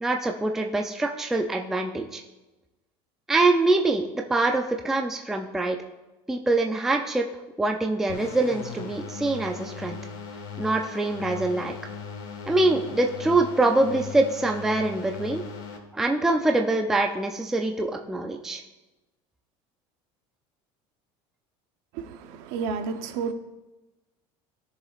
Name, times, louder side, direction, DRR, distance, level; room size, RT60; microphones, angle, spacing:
voice 1, 0.0-2.2 3.3-5.8 6.3-7.2 7.6-10.0 10.6-11.7 12.5-15.4 15.9-18.6, right 2 dB, 5° right, 3 dB, 0.4 m, -24 dB
sound 1, 8.1-15.8, left 5 dB, 70° left, 1.6 m, -38 dB
voice 2, 21.9-23.3, right 5 dB, 60° right, 7 dB, 0.9 m, -31 dB
18.5 x 6.9 x 2.4 m, 1.1 s
cardioid pair, 175°, 13 cm